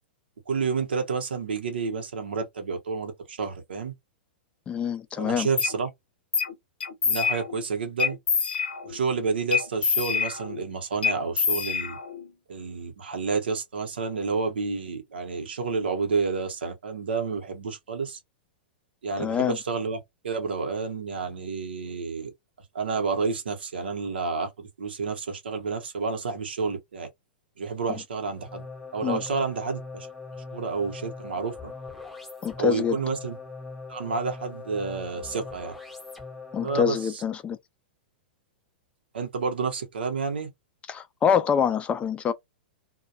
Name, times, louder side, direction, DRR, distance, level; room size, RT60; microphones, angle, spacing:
voice 1, 0.5-3.9 5.2-5.9 7.0-8.2 8.8-12.0 12.5-18.2 19.0-22.3 22.7-27.1 27.6-28.6 28.9-30.1 30.5-31.7 32.6-33.4 33.9-35.8 36.6-37.2 39.1-40.5, right 4 dB, 85° right, 0.9 m, -30 dB
voice 2, 4.7-5.5 19.2-19.6 29.0-29.2 32.4-33.0 36.5-37.6 40.9-42.3, left 8 dB, 20° left, 0.3 m, -25 dB
sound 1, 5.6-5.7 6.3-6.5 6.8-7.6 8.0-9.0 9.5-10.7 11.0-12.3, left 6 dB, 85° left, 0.7 m, -26 dB
sound 2, 28.3-37.1, left 3 dB, 5° left, 0.8 m, -41 dB
2.2 x 2.2 x 2.7 m
hypercardioid pair, 120°, 6 cm